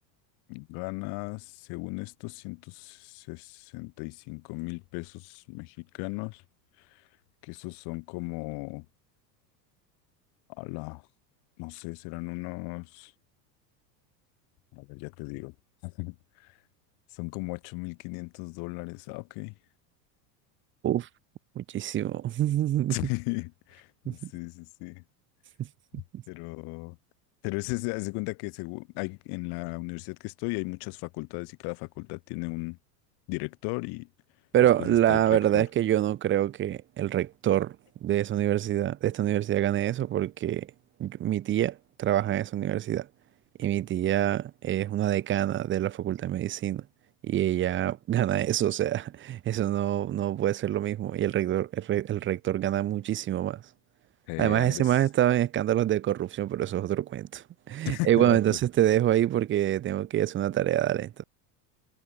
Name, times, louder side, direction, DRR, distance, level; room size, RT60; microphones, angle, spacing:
voice 1, 0.5-6.4 7.4-8.9 10.5-11.0 11.6-13.1 14.7-15.5 15.8-16.1 16.4-16.5 17.1-19.5 22.9-25.0 26.3-27.0 27.4-32.8 33.3-34.1 34.8-35.7 54.3-54.9 57.8-58.6, left 30 dB, 55° left, 0.8 m, -36 dB
voice 2, 21.6-23.0 24.1-24.3 25.9-26.2 34.5-37.8 38.0-40.7 41.0-43.1 43.6-46.8 47.2-53.6 54.4-61.2, right 12 dB, 25° right, 0.6 m, -26 dB
hypercardioid pair, 100°, 49 cm